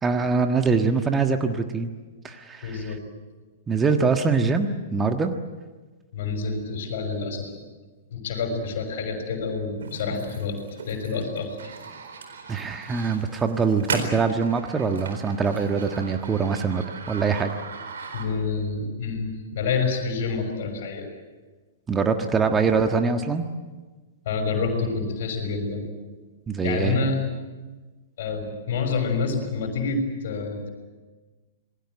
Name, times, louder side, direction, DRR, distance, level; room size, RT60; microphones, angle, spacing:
voice 1, 0.0-1.9 2.2-2.9 3.7-5.3 12.5-17.6 21.9-23.5 26.5-27.0, right 4 dB, 15° right, 6 dB, 1.5 m, -23 dB
voice 2, 2.6-3.0 6.1-7.5 8.1-10.6 10.9-11.6 18.1-21.1 22.5-22.6 24.2-25.9 26.6-27.2 28.2-30.7, left 4 dB, 50° left, 5 dB, 6.2 m, -28 dB
sound 1, 9.8-18.6, right 4 dB, 60° right, 4.2 m, -37 dB
27.5 x 20.5 x 7.9 m, 1.3 s
figure-of-eight pair, 105°, 0 cm